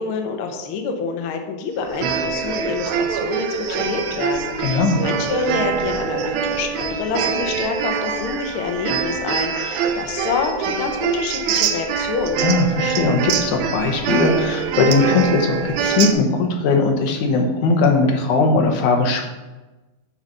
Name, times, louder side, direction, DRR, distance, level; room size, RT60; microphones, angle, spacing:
voice 1, 0.0-12.5, left 5 dB, 65° left, 4 dB, 1.4 m, -27 dB
sound 1, 1.9-16.1, right 6 dB, 80° right, 2.0 m, -24 dB
voice 2, 4.6-5.0 12.4-19.3, left 3 dB, 80° left, 3 dB, 2.5 m, -19 dB
8.8 x 4.1 x 6.4 m, 1.1 s
omnidirectional pair, 3.4 m